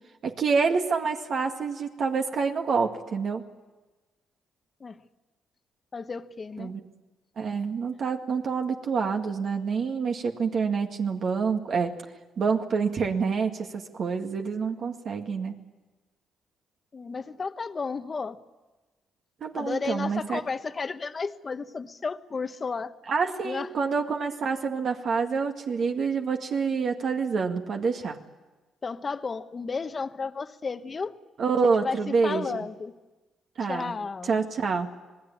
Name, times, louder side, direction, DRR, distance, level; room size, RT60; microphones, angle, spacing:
voice 1, 0.2-3.4 6.6-6.8 7.4-11.9 12.4-15.6 19.4-20.4 23.1-28.2 31.4-32.5 33.6-33.9 34.2-34.9, right 5 dB, 55° right, 3 dB, 2.1 m, -27 dB
voice 2, 5.9-6.7 16.9-18.4 19.5-22.9 23.4-23.7 28.8-31.1 31.6-32.0 32.2-32.9 33.7-34.4, left 4 dB, 35° left, 10 dB, 1.1 m, -33 dB
26.5 x 19.5 x 8.7 m, 1.2 s
cardioid pair, 90°, 0 cm